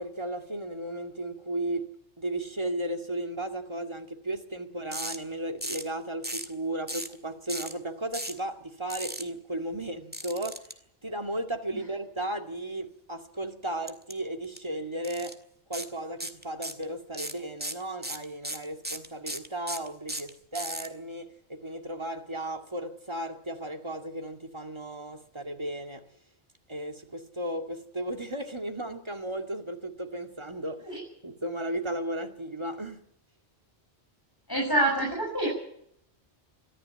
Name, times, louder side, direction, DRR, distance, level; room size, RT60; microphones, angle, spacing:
voice 1, 0.0-1.9 2.2-10.7 11.0-15.4 15.7-26.1 26.7-31.0 31.2-33.0, right 1 dB, 25° right, 2.2 m, -35 dB
sound 1, 4.9-5.2 5.6-5.9 6.2-6.5 6.9-7.2 7.5-7.7 8.1-8.4 8.9-9.2 10.1-10.7 13.9-14.1 14.4-14.6 15.0-15.3 15.7-15.9 16.2-16.8 17.1-20.9, right 1 dB, 10° right, 1.9 m, -35 dB
voice 2, 34.5-35.5, right 1 dB, 20° left, 7.1 m, -26 dB
23.5 x 15.0 x 9.0 m
omnidirectional pair, 1.2 m